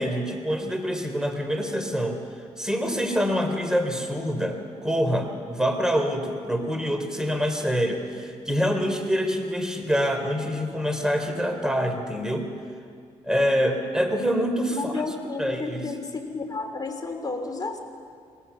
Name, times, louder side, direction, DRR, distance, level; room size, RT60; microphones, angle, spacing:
voice 1, 0.0-2.2 2.6-12.5 13.2-15.0 15.4-15.9, equal, 5° right, 5 dB, 3.4 m, -26 dB
voice 2, 14.7-17.8, left 3 dB, 30° left, 3 dB, 3.4 m, -32 dB
22.5 x 18.0 x 7.0 m, 2.3 s
cardioid pair, 70°, 13 cm